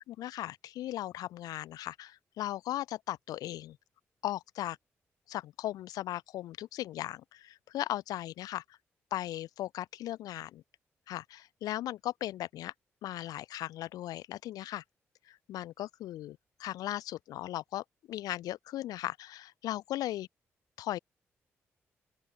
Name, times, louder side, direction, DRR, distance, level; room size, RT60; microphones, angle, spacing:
voice 1, 0.1-3.8 4.2-4.8 5.3-8.6 9.1-10.6 11.1-12.7 13.0-14.8 15.3-20.3 20.8-21.0, left 14 dB, 75° left, 0.5 m, -37 dB
open air
hypercardioid pair, 40°, 6 cm